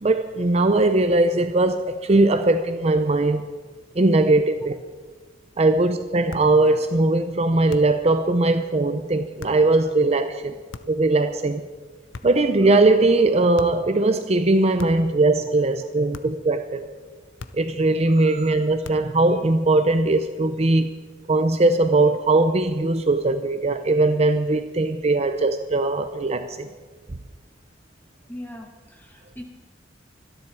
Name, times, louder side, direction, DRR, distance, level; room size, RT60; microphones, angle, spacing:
voice 1, 0.0-3.4 4.0-4.8 5.6-10.6 10.9-11.6 12.2-16.8 17.5-20.9 21.3-26.7, right 2 dB, 35° right, 0.6 m, -20 dB
sound 1, 6.3-6.6 7.7-8.1 9.4-9.7 10.7-11.1 12.1-12.5 13.6-13.9 14.8-15.2 16.1-16.5 17.4-17.8 18.8-19.2, left 3 dB, 90° left, 0.8 m, -40 dB
voice 2, 28.3-29.4, left 1 dB, 10° left, 2.3 m, -40 dB
25.0 x 10.5 x 4.7 m
head